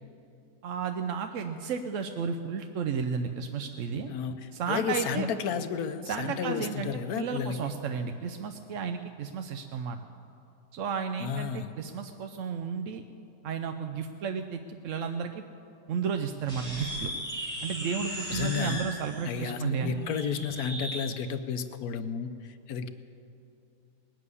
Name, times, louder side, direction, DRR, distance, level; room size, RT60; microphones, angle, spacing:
voice 1, 0.6-4.1 4.5-5.3 6.1-10.0 10.7-13.0 13.4-15.4 15.9-17.1 17.6-19.9, right 6 dB, 65° right, 7 dB, 0.8 m, -33 dB
voice 2, 4.1-7.6 11.2-11.7 18.3-18.9 19.2-22.9, left 7 dB, 65° left, 9 dB, 1.2 m, -32 dB
sound 1, 16.4-21.1, equal, 25° right, 2.6 m, -37 dB
19.5 x 7.6 x 9.7 m, 2.6 s
omnidirectional pair, 1.8 m